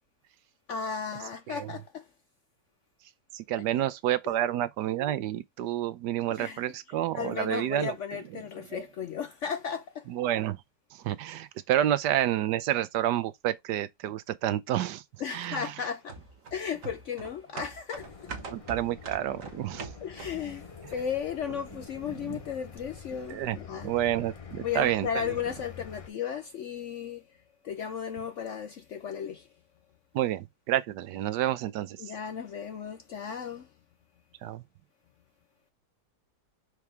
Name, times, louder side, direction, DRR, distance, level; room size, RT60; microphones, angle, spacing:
voice 1, 0.7-2.1 4.3-4.4 6.3-6.6 7.1-10.1 15.2-16.2 16.5-18.3 20.0-23.9 24.6-27.4 27.6-29.5 32.0-33.7, left 7 dB, 65° left, 0.7 m, -35 dB
voice 2, 3.3-7.9 8.7-8.8 10.1-10.6 10.9-15.0 15.3-15.7 18.5-19.9 22.2-22.4 23.3-23.6 23.8-25.1 30.1-32.0 34.4-34.6, right 12 dB, 80° right, 1.3 m, -29 dB
sound 1, 16.1-20.6 20.9-21.0, right 4 dB, 50° right, 1.5 m, -43 dB
sound 2, 18.0-26.1, left 6 dB, 30° left, 0.7 m, -47 dB
6.0 x 4.7 x 3.4 m
omnidirectional pair, 1.8 m